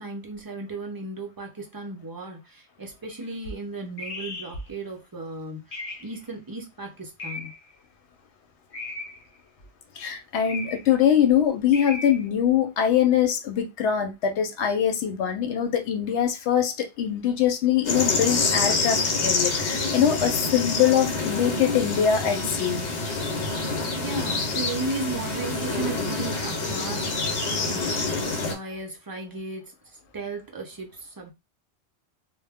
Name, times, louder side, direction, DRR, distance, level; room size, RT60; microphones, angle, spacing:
voice 1, 0.0-7.5 24.0-29.7 30.1-31.3, right 3 dB, 30° right, 0.4 m, -35 dB
sound 1, 3.1-3.2 4.0-4.6 5.7-6.2 7.2-7.7 8.7-9.3 10.4-11.0 11.7-12.3, left 3 dB, 50° left, 0.7 m, -36 dB
voice 2, 10.0-22.8, left 9 dB, 85° left, 0.9 m, -23 dB
sound 2, 17.8-28.5, left 3 dB, 65° left, 1.0 m, -27 dB
2.2 x 2.0 x 3.4 m
omnidirectional pair, 1.1 m